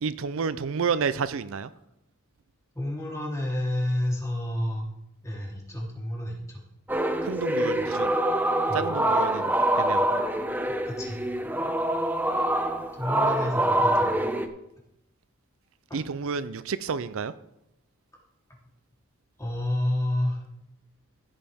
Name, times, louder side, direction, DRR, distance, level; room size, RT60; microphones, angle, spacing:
voice 1, 0.0-1.7 7.2-8.1 8.7-10.2 15.9-17.3, right 5 dB, 65° right, 14 dB, 0.5 m, -30 dB
voice 2, 2.7-4.9 5.2-6.6 8.7-8.9 10.8-11.2 12.9-14.3 15.9-16.0 19.4-20.4, left 1 dB, 15° left, -4 dB, 3.3 m, -30 dB
sound 1, 6.9-14.5, right 1 dB, 10° right, 0.7 m, -25 dB
15.5 x 9.0 x 3.6 m, 0.82 s
head